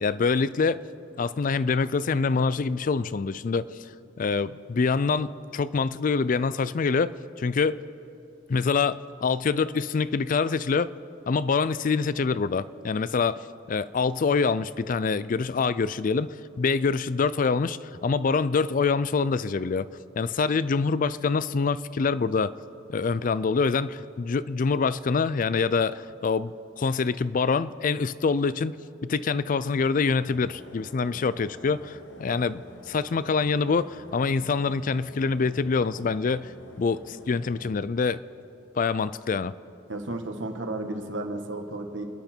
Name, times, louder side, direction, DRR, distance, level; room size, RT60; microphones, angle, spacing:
voice 1, 0.0-0.8 1.2-3.7 4.2-7.8 8.5-10.9 11.3-19.9 20.2-22.6 22.9-28.8 29.0-36.5 36.8-38.2 38.7-39.5, left 4 dB, 45° left, 17 dB, 0.4 m, -25 dB
sound 1, 30.2-37.8, left 1 dB, 85° left, 1.6 m, -48 dB
voice 2, 39.9-42.0, right 2 dB, 85° right, 5 dB, 1.6 m, -33 dB
30.0 x 10.0 x 4.5 m, 2.8 s
head